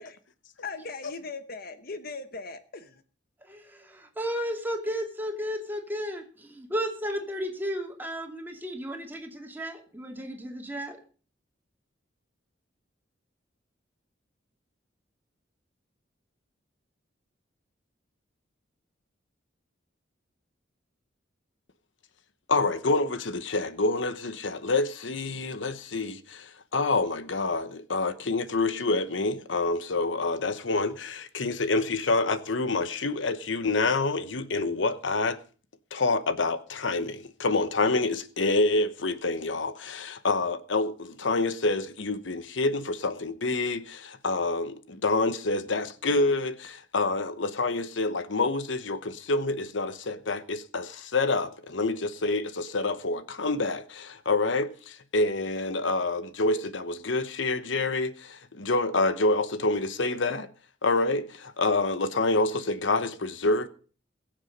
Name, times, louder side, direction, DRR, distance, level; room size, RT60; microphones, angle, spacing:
voice 1, 0.6-2.9, left 4 dB, 50° left, 1.0 m, -39 dB
voice 2, 3.4-11.0, equal, 10° right, 2.7 m, -34 dB
voice 3, 22.5-35.4 35.9-60.5 60.8-63.7, left 3 dB, 80° left, 1.0 m, -27 dB
21.5 x 7.2 x 5.3 m
head